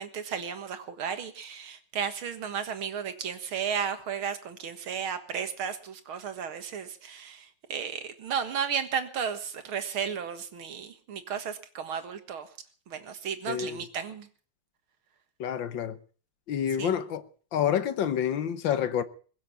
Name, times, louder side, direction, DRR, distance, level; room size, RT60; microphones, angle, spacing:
voice 1, 0.0-12.5 12.9-14.3 16.8-17.0, right 7 dB, 80° right, 2.5 m, -34 dB
voice 2, 13.5-13.8 15.4-16.0 16.5-17.2 17.5-19.0, left 9 dB, 70° left, 1.7 m, -28 dB
21.5 x 7.7 x 8.6 m
omnidirectional pair, 2.2 m